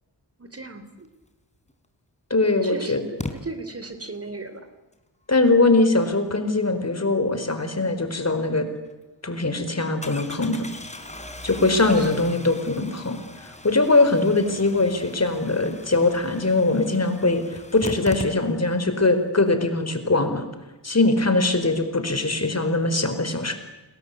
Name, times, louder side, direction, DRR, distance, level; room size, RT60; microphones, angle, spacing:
voice 1, 0.4-1.1 2.5-4.7 11.5-12.1, right 2 dB, 35° right, 10 dB, 3.3 m, -37 dB
Engine starting, 1.7-1.8 3.2-3.3 8.4-8.5 8.9-9.0 10.0-18.8 19.1-19.2 19.4-19.5, left 1 dB, 15° left, 4.0 m, -39 dB
voice 2, 2.3-3.1 5.3-8.7 9.2-10.7 11.4-20.4 20.8-23.5, left 2 dB, 35° left, 8 dB, 4.7 m, -21 dB
29.5 x 21.0 x 8.4 m, 1.1 s
cardioid pair, 70°, 43 cm